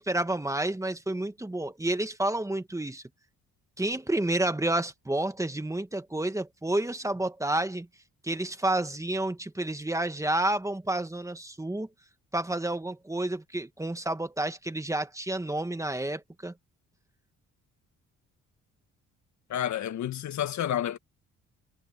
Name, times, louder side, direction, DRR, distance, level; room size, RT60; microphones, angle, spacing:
voice 1, 0.0-3.0 3.8-7.9 8.2-11.9 12.3-16.5, right 1 dB, 10° right, 1.9 m, -30 dB
voice 2, 19.5-21.0, left 11 dB, 70° left, 1.5 m, -30 dB
cardioid pair, 90°, 30 cm